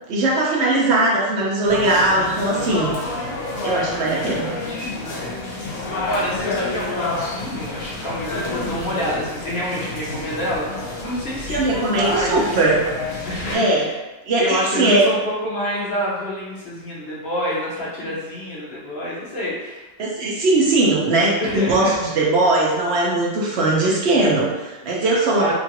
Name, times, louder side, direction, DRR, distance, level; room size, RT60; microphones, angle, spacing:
voice 1, 0.1-2.9 3.6-4.5 11.5-12.8 13.5-13.9 14.3-15.0 20.0-25.5, right 2 dB, 60° right, -3 dB, 0.8 m, -19 dB
sound 1, 1.6-13.6, left 2 dB, 70° left, 1.2 m, -29 dB
voice 2, 6.1-10.7 11.0-12.8 13.2-13.9 14.4-19.8 21.4-22.0 25.4-25.5, left 1 dB, 55° left, -6 dB, 0.9 m, -27 dB
3.0 x 2.4 x 2.8 m, 1.1 s
omnidirectional pair, 1.5 m